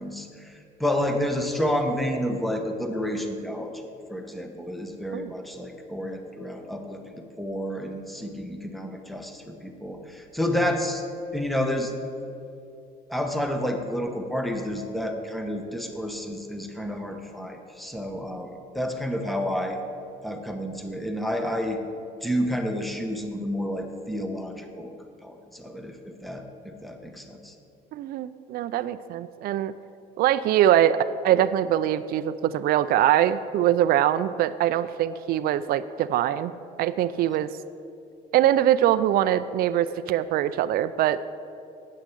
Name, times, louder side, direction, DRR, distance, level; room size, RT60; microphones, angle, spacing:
voice 1, 0.0-3.8 4.1-7.0 7.4-11.0 11.3-11.9 13.1-19.8 20.2-21.8 22.2-24.9 25.2-27.5, equal, ahead, 4 dB, 1.0 m, -30 dB
voice 2, 27.9-29.7 30.2-36.5 36.8-37.5 38.3-41.2, right 11 dB, 65° right, 13 dB, 0.4 m, -23 dB
8.5 x 6.2 x 8.3 m, 2.6 s
cardioid pair, 110°, 17 cm